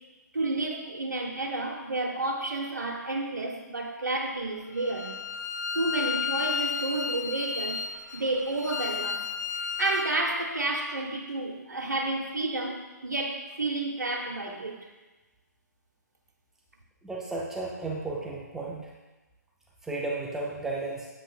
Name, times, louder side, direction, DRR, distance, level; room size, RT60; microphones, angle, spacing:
voice 1, 0.3-5.2 5.7-7.8 8.1-9.2 9.8-14.8, right 2 dB, 75° right, 0 dB, 1.0 m, -30 dB
Bowed string instrument, 4.8-10.2, left 6 dB, 70° left, 0.5 m, -33 dB
voice 2, 17.0-18.9 19.8-21.1, right 2 dB, 5° right, -4 dB, 0.5 m, -34 dB
8.1 x 5.7 x 2.4 m, 1.2 s
figure-of-eight pair, 135°, 10 cm